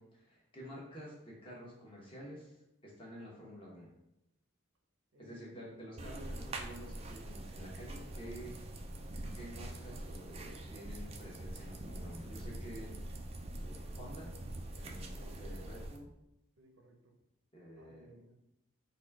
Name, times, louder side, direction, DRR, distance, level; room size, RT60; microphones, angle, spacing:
voice 1, 0.0-2.6 2.8-3.9 5.2-8.5 9.3-12.9 13.6-14.3 14.7-16.1 17.5-18.1, equal, 25° left, -4 dB, 1.1 m, -50 dB
voice 2, 5.1-5.8 15.1-15.3 16.6-17.2 17.7-18.3, right 1 dB, 80° right, 3 dB, 0.7 m, -60 dB
sound 1, 6.0-16.0, right 1 dB, 30° right, 0.4 m, -44 dB
4.1 x 2.4 x 4.6 m, 0.85 s
head